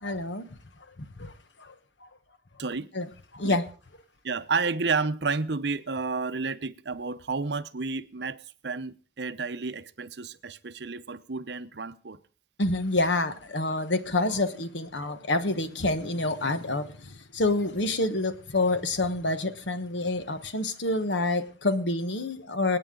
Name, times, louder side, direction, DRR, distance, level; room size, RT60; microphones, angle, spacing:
voice 1, 0.0-0.5 1.0-1.3 1.6-1.7 2.0-2.1 2.9-3.1 3.3-3.7 12.6-22.8, left 2 dB, 85° left, 1.3 m, -27 dB
voice 2, 4.2-12.2, right 4 dB, 70° right, 0.8 m, -31 dB
27.0 x 9.1 x 3.8 m
head